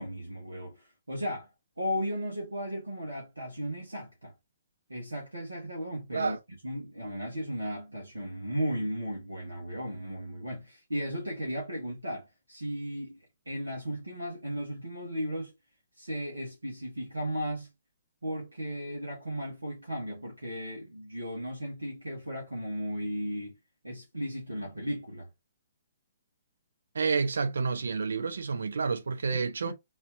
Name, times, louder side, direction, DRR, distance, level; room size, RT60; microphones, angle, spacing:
voice 1, 0.0-1.5 1.8-4.3 4.9-6.4 6.6-13.2 13.4-15.5 16.0-17.7 18.2-23.6 23.8-25.3 29.3-29.7, equal, 90° right, 1.7 m, -35 dB
voice 2, 26.9-29.7, right 4 dB, 70° right, 0.8 m, -29 dB
4.0 x 3.0 x 2.7 m
figure-of-eight pair, 130°, 0 cm